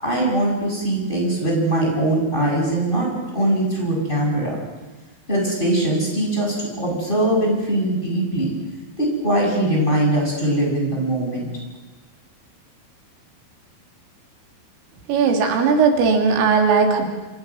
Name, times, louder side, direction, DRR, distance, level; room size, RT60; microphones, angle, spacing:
voice 1, 0.0-3.1 3.3-4.6 5.3-8.5 9.0-11.5, right 1 dB, 10° left, -2 dB, 7.7 m, -21 dB
voice 2, 15.1-17.1, right 5 dB, 90° right, 3 dB, 5.5 m, -17 dB
28.5 x 26.5 x 6.4 m, 1.2 s
omnidirectional pair, 5.6 m